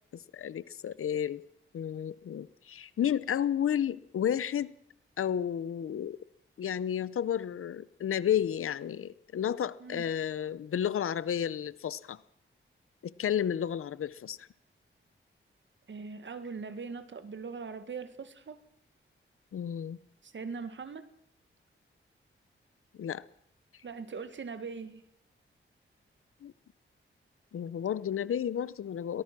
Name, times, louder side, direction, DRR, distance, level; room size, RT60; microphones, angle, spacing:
voice 1, 0.1-1.4 1.7-4.7 5.2-6.2 6.6-12.2 13.0-14.5 19.5-20.0 23.0-23.2 26.4-26.5 27.5-29.2, left 9 dB, 85° left, 18 dB, 0.7 m, -32 dB
voice 2, 15.9-18.6 20.2-21.1 23.8-25.0, right 5 dB, 60° right, 11 dB, 1.8 m, -41 dB
23.5 x 18.5 x 6.1 m, 0.72 s
wide cardioid pair, 95°, 21 cm